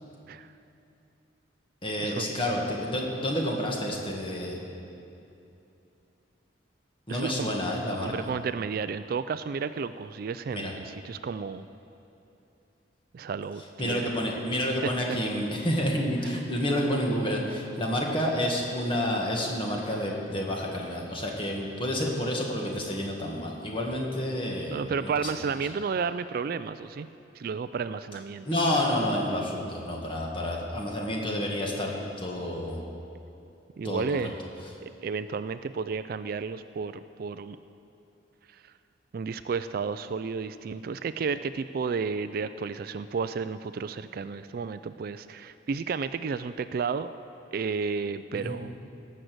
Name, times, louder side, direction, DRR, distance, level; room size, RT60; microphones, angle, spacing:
voice 1, 1.8-4.6 7.1-8.3 10.5-10.7 13.8-25.3 28.5-31.9 32.2-32.8 33.8-34.0 48.4-48.6, left 1 dB, 30° left, -1 dB, 1.9 m, -29 dB
voice 2, 7.1-7.5 7.9-11.6 13.1-14.1 15.1-15.2 16.2-16.3 24.7-27.1 27.3-28.5 33.8-34.3 35.0-37.6 39.1-47.1 47.5-48.7, right 5 dB, 50° right, 12 dB, 0.3 m, -32 dB
18.0 x 6.6 x 7.8 m, 2.8 s
head